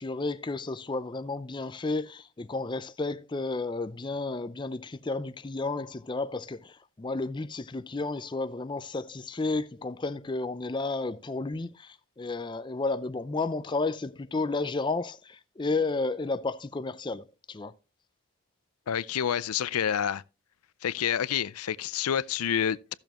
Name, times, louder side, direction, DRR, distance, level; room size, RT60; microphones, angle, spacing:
voice 1, 0.0-17.7, left 3 dB, 20° left, 0.4 m, -32 dB
voice 2, 18.9-20.2 20.8-22.9, left 9 dB, 85° left, 0.4 m, -28 dB
14.5 x 6.9 x 3.0 m
head